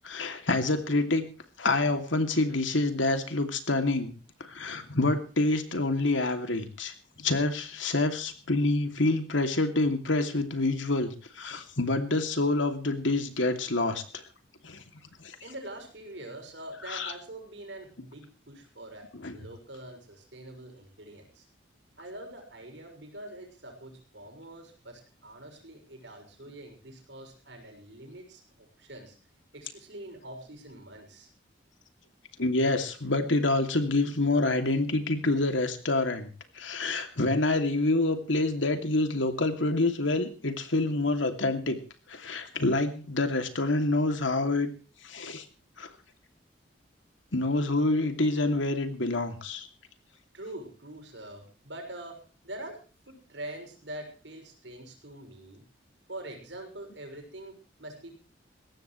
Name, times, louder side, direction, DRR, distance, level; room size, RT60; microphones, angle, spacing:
voice 1, 0.0-1.2 1.6-4.1 4.4-6.9 7.2-14.2 14.6-14.8 15.2-15.4 16.9-17.1 19.1-19.4 32.4-41.8 42.1-44.7 45.0-45.4 45.8-45.9 47.3-49.7, left 2 dB, 85° left, 6 dB, 2.7 m, -27 dB
voice 2, 15.4-21.5 22.0-29.2 29.5-31.3 50.3-55.6 56.1-58.1, right 1 dB, 70° right, 3 dB, 6.5 m, -44 dB
21.0 x 17.0 x 3.2 m, 0.37 s
head